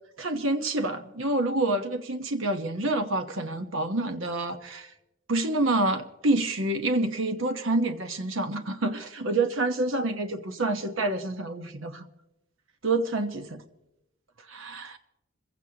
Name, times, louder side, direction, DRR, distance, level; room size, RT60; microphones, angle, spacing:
voice 1, 0.2-4.9 5.3-12.1 12.8-13.5 14.5-15.0, right 2 dB, 85° right, 7 dB, 1.2 m, -27 dB
26.0 x 16.0 x 2.9 m, 0.90 s
head